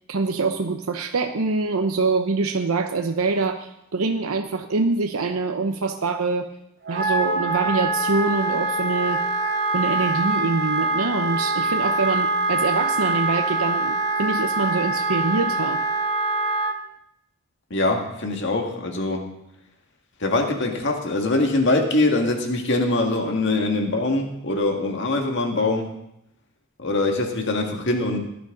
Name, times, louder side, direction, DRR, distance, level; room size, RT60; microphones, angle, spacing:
voice 1, 0.1-6.5 6.9-9.2 9.7-15.8, right 3 dB, 90° right, 5 dB, 0.8 m, -24 dB
Wind instrument woodwind instrument, 6.8-16.7, right 2 dB, 50° right, 1.0 m, -24 dB
voice 2, 17.7-19.3 20.2-25.9 26.8-28.2, left 2 dB, 55° left, 2 dB, 2.0 m, -23 dB
18.0 x 11.0 x 3.9 m, 0.79 s
head